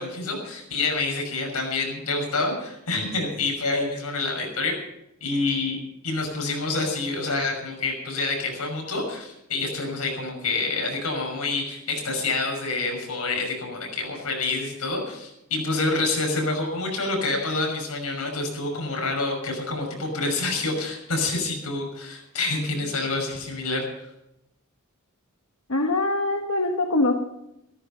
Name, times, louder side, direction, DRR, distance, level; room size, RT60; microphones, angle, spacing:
voice 1, 0.0-4.7 5.2-5.8 6.0-23.8, left 3 dB, 90° left, 1 dB, 6.1 m, -27 dB
voice 2, 25.7-27.2, left 2 dB, 65° left, 3 dB, 1.3 m, -23 dB
15.5 x 13.5 x 5.6 m, 0.85 s
head